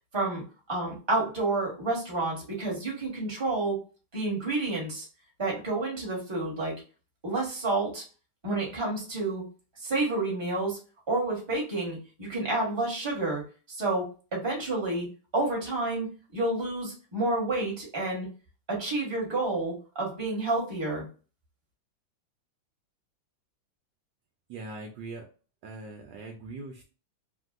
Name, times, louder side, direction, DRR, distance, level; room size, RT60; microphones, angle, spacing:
voice 1, 0.1-3.8 4.1-5.1 5.4-6.8 7.2-8.0 8.4-9.5 9.8-10.8 11.1-13.4 13.7-15.1 15.3-18.3 18.7-21.1, right 2 dB, 15° right, -3 dB, 1.3 m, -29 dB
voice 2, 24.5-25.3 25.6-26.8, right 3 dB, 75° right, 2 dB, 1.2 m, -41 dB
3.4 x 2.6 x 2.4 m, 0.35 s
omnidirectional pair, 2.2 m